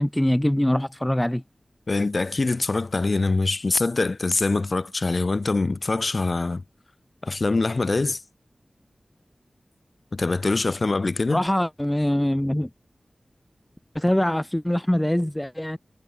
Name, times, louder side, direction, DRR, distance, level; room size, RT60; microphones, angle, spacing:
voice 1, 0.0-1.4 11.3-12.7 13.9-15.8, left 1 dB, 10° left, 1.7 m, -23 dB
voice 2, 1.9-6.6 7.2-8.2 10.1-11.4, left 3 dB, 55° left, 4.5 m, -24 dB
wide cardioid pair, 65°, 0 cm